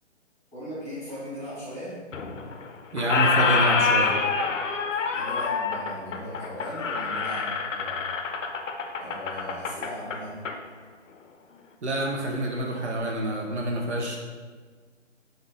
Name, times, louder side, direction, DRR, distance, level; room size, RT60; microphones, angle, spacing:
voice 1, 0.5-2.0 5.1-8.1 9.0-10.4, equal, 5° left, -10 dB, 1.4 m, -38 dB
Squeak, 2.1-2.7 3.0-10.6, left 4 dB, 80° left, 0.5 m, -26 dB
voice 2, 2.9-4.1 11.8-14.2, right 1 dB, 65° right, 0 dB, 0.7 m, -27 dB
3.5 x 2.6 x 3.8 m, 1.5 s
figure-of-eight pair, 145°, 37 cm